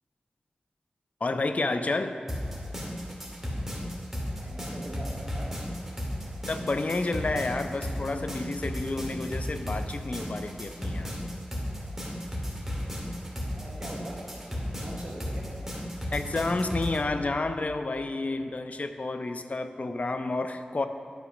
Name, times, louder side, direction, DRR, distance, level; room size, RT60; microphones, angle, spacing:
voice 1, 1.2-2.2 6.5-11.1 16.1-20.9, left 2 dB, 55° left, 8 dB, 0.6 m, -30 dB
sound 1, 2.3-17.0, equal, 10° right, 2.3 m, -34 dB
voice 2, 4.3-5.5 6.0-6.1 13.4-14.2 14.7-15.5, right 1 dB, 55° right, -4 dB, 1.9 m, -42 dB
10.5 x 4.8 x 6.3 m, 2.5 s
cardioid pair, 50°, 3 cm